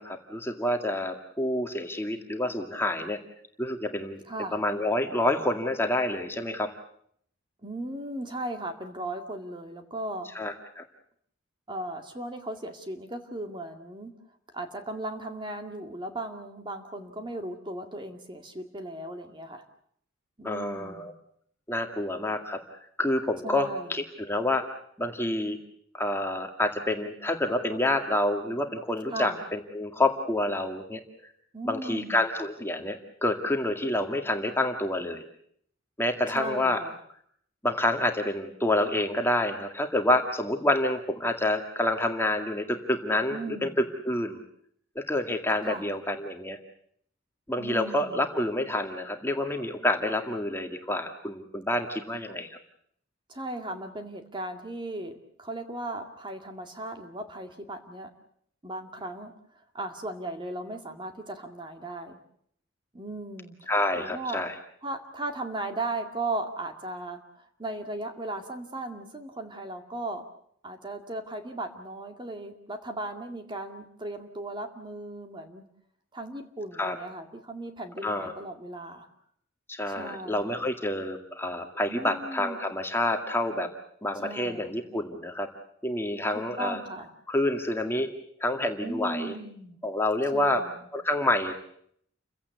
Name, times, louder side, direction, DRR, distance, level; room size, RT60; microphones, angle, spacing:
voice 1, 0.0-3.2 3.6-4.2 4.5-6.7 10.3-10.8 20.4-21.1 21.7-22.6 23.0-24.6 25.0-25.6 25.9-31.0 31.6-35.3 36.0-36.8 37.6-43.7 44.0-44.4 45.0-46.6 47.5-52.6 63.7-64.5 76.8-77.0 78.0-78.3 79.7-83.7 84.0-85.5 85.8-86.8 87.3-88.1 88.4-89.3 89.8-90.6 90.9-91.5, left 1 dB, 10° left, 4 dB, 2.0 m, -28 dB
voice 2, 4.3-4.6 7.6-10.3 11.7-14.1 14.5-19.6 20.4-21.1 23.4-23.9 29.1-29.4 31.5-32.2 36.3-37.0 43.3-43.8 45.6-45.9 47.6-48.3 53.3-58.1 58.6-62.2 62.9-63.6 64.0-64.4 64.8-70.2 70.6-75.6 76.1-79.1 79.9-80.7 81.9-82.6 84.1-84.8 86.3-87.1 88.8-89.8 90.3-90.7, right 2 dB, 25° right, 6 dB, 2.1 m, -37 dB
29.5 x 16.0 x 8.4 m, 0.66 s
head